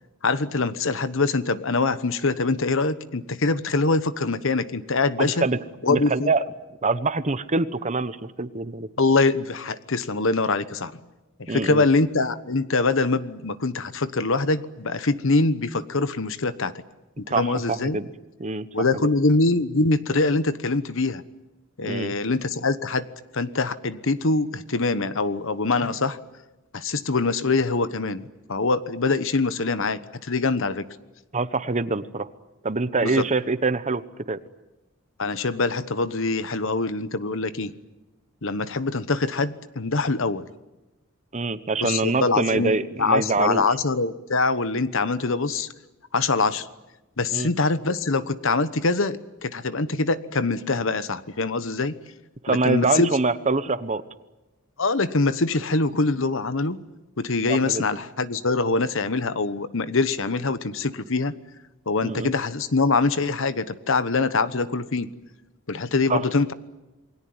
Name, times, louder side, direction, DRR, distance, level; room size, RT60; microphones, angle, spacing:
voice 1, 0.2-5.5 5.8-6.3 9.0-10.9 11.4-16.7 17.3-18.0 18.7-21.2 21.8-23.0 23.3-26.2 26.7-30.8 33.0-33.2 35.2-37.7 38.4-40.5 41.8-42.7 43.0-45.7 46.1-46.7 47.2-51.9 52.5-53.1 54.8-56.8 57.2-61.3 61.9-65.1 65.7-66.5, left 3 dB, 65° left, 14 dB, 1.2 m, -24 dB
voice 2, 5.2-5.6 5.9-6.4 6.8-8.9 11.5-11.8 17.3-18.1 18.4-18.7 19.0-19.1 21.8-22.1 31.3-32.3 32.6-34.0 34.3-34.4 41.3-43.6 47.3-47.5 52.4-54.0 57.5-57.8 62.0-62.3 66.1-66.2, right 3 dB, 35° right, 13 dB, 1.1 m, -25 dB
28.5 x 21.0 x 9.6 m, 1.0 s
head